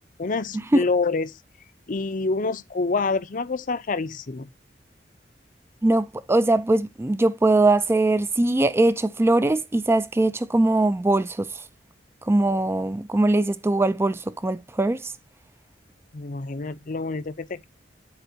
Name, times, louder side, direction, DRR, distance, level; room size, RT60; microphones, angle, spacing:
voice 1, 0.2-1.4 1.9-4.5 16.1-17.7, left 3 dB, 45° left, 0.6 m, -27 dB
voice 2, 5.8-11.6 12.2-15.1, right 2 dB, 15° right, 0.4 m, -21 dB
12.0 x 4.4 x 2.8 m
head